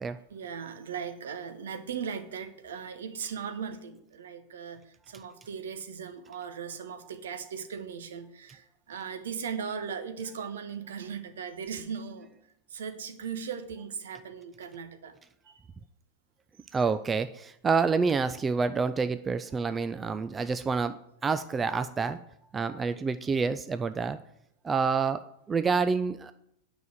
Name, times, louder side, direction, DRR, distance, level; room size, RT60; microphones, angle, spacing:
voice 1, 0.3-12.3 12.7-15.1 15.5-15.6, right 6 dB, 60° right, 9 dB, 1.2 m, -38 dB
voice 2, 16.7-21.0 21.2-22.2 22.5-24.2 24.6-26.3, right 5 dB, 15° right, 12 dB, 0.4 m, -28 dB
9.3 x 5.9 x 8.1 m, 0.77 s
figure-of-eight pair, 90°, 0 cm